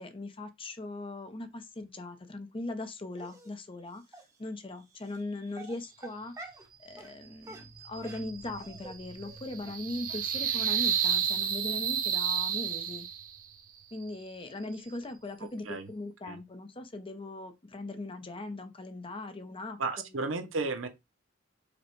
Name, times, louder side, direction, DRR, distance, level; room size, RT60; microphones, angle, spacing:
voice 1, 0.0-4.0 4.4-6.5 6.8-13.1 13.9-19.8, left 2 dB, 30° left, 0.7 m, -40 dB
Dog, 3.2-3.5 4.1-4.2 5.0-5.2 5.5-6.7 7.0-7.1 7.4-8.9 9.2-9.4 9.6-9.8 10.1-10.2 10.6-10.7 11.1-11.2 11.4-11.5, right 2 dB, 15° right, 1.1 m, -48 dB
sound 1, 7.5-13.4, right 8 dB, 45° right, 0.6 m, -32 dB
voice 2, 15.4-15.9 16.2-16.4 19.8-20.9, right 3 dB, 80° right, 0.8 m, -34 dB
5.0 x 2.2 x 4.5 m
head